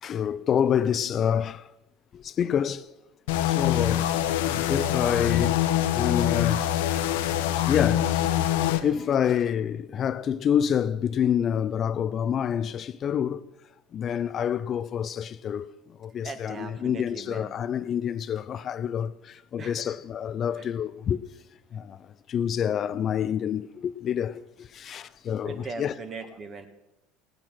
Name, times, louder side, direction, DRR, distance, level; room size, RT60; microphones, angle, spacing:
voice 1, 0.0-1.7 2.1-2.9 3.5-4.2 4.5-5.6 5.9-6.6 7.6-8.4 8.7-13.4 13.9-21.2 21.7-25.9, left 8 dB, 40° left, 0.4 m, -27 dB
sound 1, 3.3-8.8, left 12 dB, 85° left, 1.0 m, -24 dB
voice 2, 16.2-17.6 19.6-20.0 20.5-20.7 24.8-24.9 25.4-26.7, right 4 dB, 35° right, 1.6 m, -40 dB
17.5 x 8.8 x 6.1 m
supercardioid pair, 105°, 0 cm